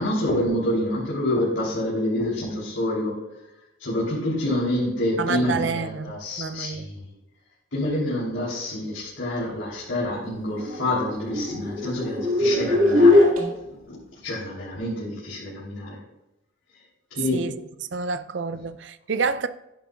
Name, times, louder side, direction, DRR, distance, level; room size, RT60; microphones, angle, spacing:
voice 1, 0.0-3.2 3.8-7.0 7.7-13.2 13.7-14.0 14.2-16.0 17.1-17.5, left 1 dB, 80° left, 3.5 m, -27 dB
voice 2, 5.2-6.9 17.3-17.5 17.9-19.5, right 5 dB, 65° right, 0.5 m, -28 dB
sound 1, 10.4-13.5, left 2 dB, 45° right, 2.4 m, -20 dB
12.0 x 10.5 x 2.5 m
head